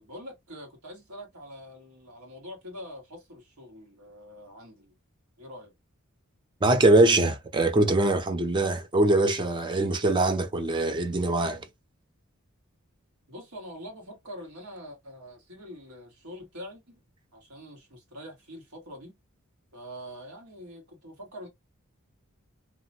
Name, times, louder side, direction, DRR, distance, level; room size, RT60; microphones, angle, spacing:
voice 1, 0.0-4.9 5.4-5.7 13.3-17.0 17.3-19.1 19.7-21.5, equal, 85° right, 1.6 m, -44 dB
voice 2, 6.6-11.7, right 2 dB, 20° right, 0.4 m, -23 dB
2.9 x 2.1 x 2.7 m
head